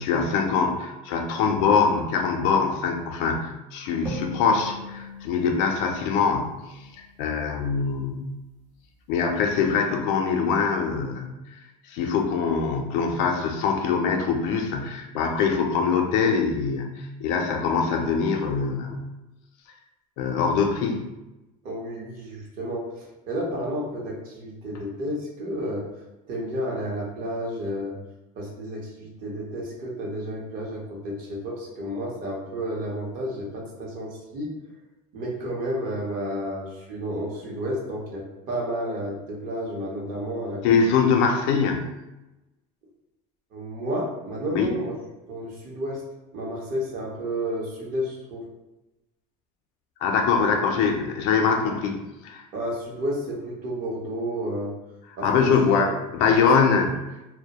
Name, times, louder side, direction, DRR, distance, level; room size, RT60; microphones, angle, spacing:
voice 1, 0.0-6.8 7.2-8.3 9.1-11.6 11.9-19.0 20.2-21.0 40.6-41.8 44.5-44.7 50.0-52.4 55.2-56.9, left 5 dB, 75° left, 3 dB, 0.4 m, -23 dB
sound 1, 4.1-7.5, left 1 dB, 15° right, 0.6 m, -40 dB
voice 2, 21.6-22.8 23.3-25.8 26.3-27.9 28.4-34.5 35.1-40.6 43.5-44.9 45.3-46.0 46.3-48.4 50.3-50.4 52.5-54.7 55.2-55.5 55.8-56.0, equal, 50° right, -2 dB, 0.7 m, -31 dB
2.2 x 2.0 x 2.8 m, 1.0 s
cardioid pair, 140°, 19 cm